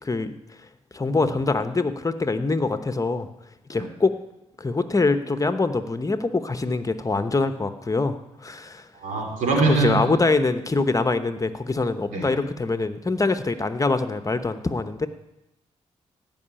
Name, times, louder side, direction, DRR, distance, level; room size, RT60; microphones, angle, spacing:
voice 1, 0.0-0.4 0.9-3.3 3.7-4.2 4.6-8.8 9.7-15.1, left 3 dB, 25° left, 10 dB, 1.0 m, -24 dB
voice 2, 9.0-10.0 12.1-12.3, right 3 dB, 90° right, 1 dB, 2.9 m, -23 dB
16.5 x 5.7 x 8.8 m, 0.92 s
cardioid pair, 60°, 12 cm